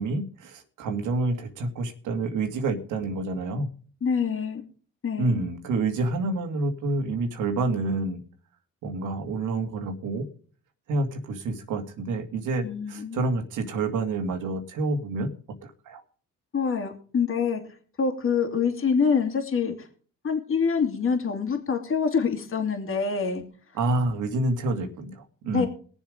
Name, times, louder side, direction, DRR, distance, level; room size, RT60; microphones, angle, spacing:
voice 1, 0.0-3.7 5.2-8.2 8.8-10.2 10.9-15.3 15.6-16.0 23.7-25.7, right 2 dB, 80° right, 5 dB, 2.3 m, -28 dB
voice 2, 4.0-4.6 5.0-5.4 12.6-13.2 16.5-17.6 18.0-19.9 20.2-23.4 25.5-25.7, left 5 dB, 45° left, 3 dB, 2.6 m, -25 dB
20.0 x 7.3 x 5.2 m, 0.44 s
cardioid pair, 90°, 30 cm